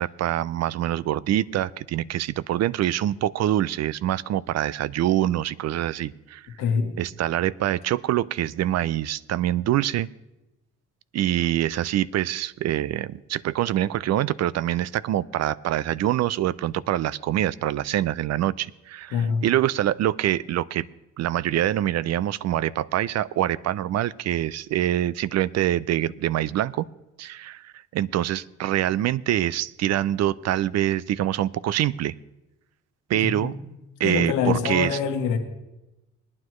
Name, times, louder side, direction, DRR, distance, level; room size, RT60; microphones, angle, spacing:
voice 1, 0.0-6.5 7.0-10.1 11.1-20.8 21.2-26.9 27.2-32.1 33.1-33.5 34.0-35.0, right 12 dB, 60° right, 20 dB, 0.4 m, -25 dB
voice 2, 6.6-6.9 19.1-19.4 33.1-33.5 34.0-35.4, left 6 dB, 90° left, 5 dB, 1.4 m, -25 dB
20.0 x 9.6 x 3.1 m, 0.97 s
cardioid pair, 90°, 30 cm